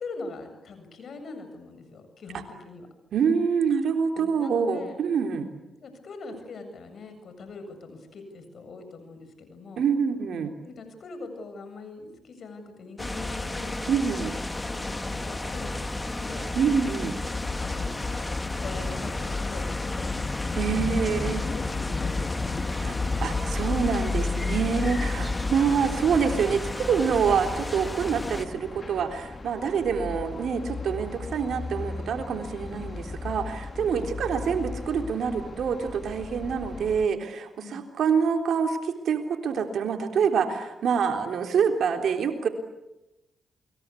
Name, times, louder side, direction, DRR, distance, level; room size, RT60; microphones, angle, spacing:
voice 1, 0.0-2.9 4.1-5.0 5.8-9.8 10.6-13.9 14.6-16.5 17.6-20.2 21.0-23.2 24.7-25.4 33.9-34.1 37.6-37.9, left 3 dB, 60° left, 8 dB, 7.6 m, -42 dB
voice 2, 3.1-5.5 9.8-10.5 13.9-14.4 16.6-17.2 20.6-21.4 22.8-42.5, right 6 dB, 70° right, 5 dB, 3.6 m, -26 dB
sound 1, 13.0-28.5, left 2 dB, 20° left, 2.4 m, -33 dB
sound 2, 17.2-37.1, left 4 dB, 40° left, 1.8 m, -34 dB
29.0 x 22.5 x 8.5 m, 0.97 s
supercardioid pair, 50°, 0 cm